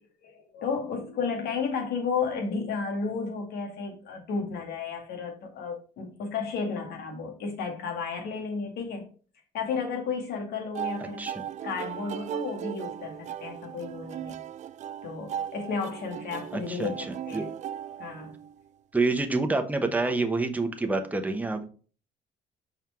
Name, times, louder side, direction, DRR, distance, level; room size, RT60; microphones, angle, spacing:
voice 1, 0.2-9.0 9.5-11.3 11.6-14.4 15.0-17.5 18.0-18.3, left 5 dB, 70° left, 2.1 m, -33 dB
sound 1, 10.7-18.7, right 10 dB, 45° right, 0.4 m, -37 dB
voice 2, 16.5-17.4 18.9-21.7, right 3 dB, 10° right, 1.0 m, -28 dB
5.7 x 4.5 x 4.5 m
cardioid pair, 110°, 17 cm